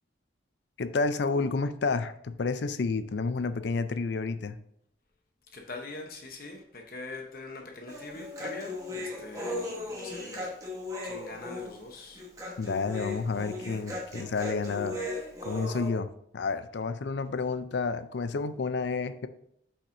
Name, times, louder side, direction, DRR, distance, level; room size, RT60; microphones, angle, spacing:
voice 1, 0.8-4.6 12.6-15.0 15.4-16.1 16.3-19.3, left 4 dB, 65° left, 12 dB, 0.4 m, -30 dB
voice 2, 5.5-10.5 11.0-12.2, left 3 dB, 50° left, 2 dB, 0.9 m, -43 dB
Human voice, 7.9-15.9, left 2 dB, 20° right, 1.2 m, -37 dB
8.4 x 5.7 x 2.6 m, 0.73 s
head